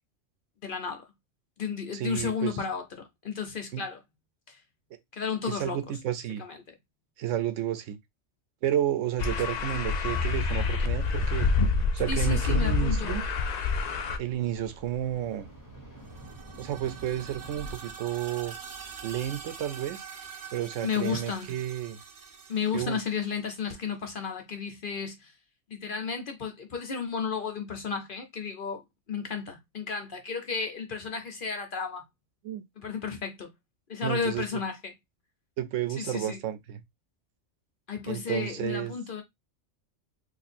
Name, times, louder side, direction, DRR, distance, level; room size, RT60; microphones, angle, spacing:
voice 1, 0.6-1.0 1.6-2.8 3.2-4.0 4.5-4.6 5.1-5.8 6.4-6.6 12.1-13.2 20.8-21.5 22.5-25.3 25.7-28.8 29.1-32.0 32.8-33.5 33.9-34.9 36.0-36.4 37.9-39.2, left 5 dB, 50° left, 0.7 m, -33 dB
voice 2, 1.9-2.6 3.7-3.8 5.4-6.4 7.2-8.0 8.6-11.5 11.9-13.2 14.2-15.5 16.6-18.6 19.0-20.0 20.5-22.0 22.7-23.0 32.4-32.6 34.0-34.6 35.6-36.8 38.1-38.9, right 11 dB, 90° right, 1.0 m, -31 dB
sound 1, 9.2-14.2, left 4 dB, 75° left, 0.3 m, -27 dB
sound 2, 12.2-17.7, right 1 dB, 15° left, 0.9 m, -47 dB
sound 3, 16.0-23.8, right 6 dB, 50° right, 0.4 m, -45 dB
2.6 x 2.5 x 4.1 m
omnidirectional pair, 1.3 m